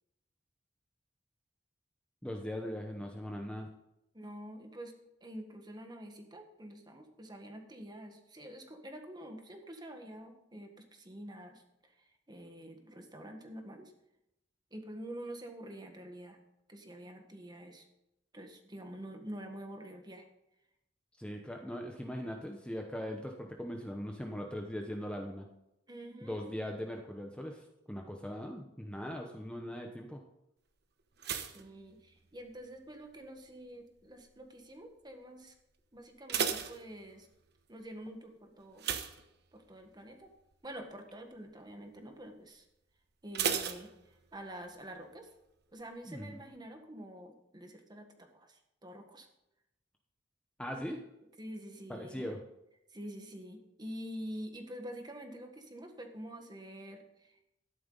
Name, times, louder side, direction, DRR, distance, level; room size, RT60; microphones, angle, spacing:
voice 1, 2.2-3.7 21.2-25.5 26.2-30.2 46.0-46.4 50.6-51.0 51.9-52.4, equal, 5° left, 2 dB, 0.9 m, -40 dB
voice 2, 4.1-4.9 5.2-11.9 12.3-13.9 14.7-16.4 16.7-17.8 18.3-20.2 25.9-26.5 31.5-35.5 35.9-37.3 37.7-38.9 39.5-40.3 40.6-42.6 43.2-43.9 44.3-45.3 45.7-49.3 51.4-52.2 52.9-57.5, right 1 dB, 20° right, 5 dB, 1.5 m, -47 dB
sound 1, 31.2-32.7 32.9-33.5 34.1-34.4 34.7-34.8 35.2-35.3 36.0-37.5 38.8-39.9 40.3-40.5 40.9-41.0 43.3-44.6 44.8-44.9, right 7 dB, 60° right, 1.0 m, -36 dB
12.5 x 11.0 x 4.0 m, 0.86 s
head